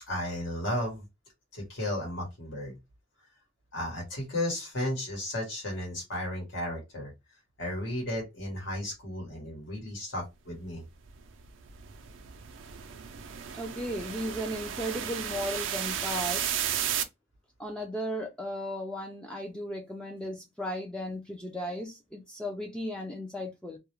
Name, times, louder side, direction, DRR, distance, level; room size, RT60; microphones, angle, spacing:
voice 1, 0.1-1.0 1.5-2.8 3.7-7.1 7.6-10.8, left 1 dB, 75° left, 1.1 m, -34 dB
sound 1, 11.0-17.0, right 9 dB, 85° right, 0.4 m, -34 dB
voice 2, 13.6-16.5 17.6-23.8, equal, 5° left, 0.3 m, -35 dB
2.3 x 2.0 x 2.9 m
head